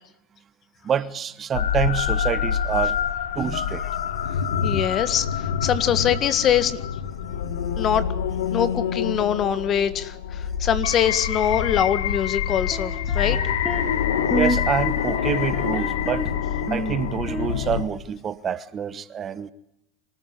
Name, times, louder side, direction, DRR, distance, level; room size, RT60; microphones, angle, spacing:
voice 1, 0.8-3.0 3.3-3.8 14.3-16.3 16.7-19.5, right 8 dB, 30° right, 1.1 m, -27 dB
sound 1, 1.5-17.9, left 8 dB, 75° left, 1.7 m, -26 dB
voice 2, 4.6-6.8 7.8-8.0 8.5-13.4, left 9 dB, 40° left, 1.7 m, -23 dB
sound 2, 12.5-14.0 14.3-14.7 15.0-16.3 16.7-17.7, right 1 dB, ahead, 2.6 m, -30 dB
26.0 x 14.0 x 9.8 m
hypercardioid pair, 95°, 0 cm